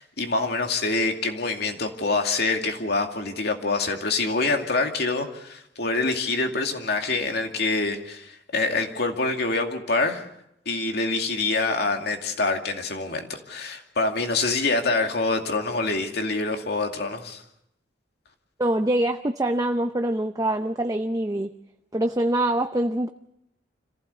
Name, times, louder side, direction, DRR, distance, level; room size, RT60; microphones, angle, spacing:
voice 1, 0.0-10.2 10.7-17.4, left 3 dB, 65° left, 4 dB, 2.4 m, -26 dB
voice 2, 18.6-21.5 21.9-23.1, right 1 dB, 20° right, 7 dB, 0.7 m, -24 dB
26.0 x 15.5 x 6.9 m, 0.82 s
head